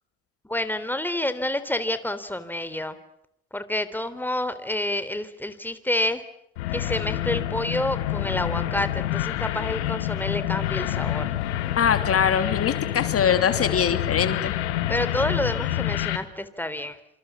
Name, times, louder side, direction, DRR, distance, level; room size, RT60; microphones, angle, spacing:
voice 1, 0.5-3.0 3.5-6.2 6.7-11.3 14.9-17.0, left 1 dB, 5° left, 12 dB, 3.6 m, -28 dB
sound 1, 6.6-16.2, left 13 dB, 85° left, 2.2 m, -27 dB
voice 2, 11.8-14.6, left 8 dB, 45° left, 9 dB, 2.9 m, -22 dB
27.0 x 27.0 x 7.4 m, 0.75 s
hypercardioid pair, 60°, 32 cm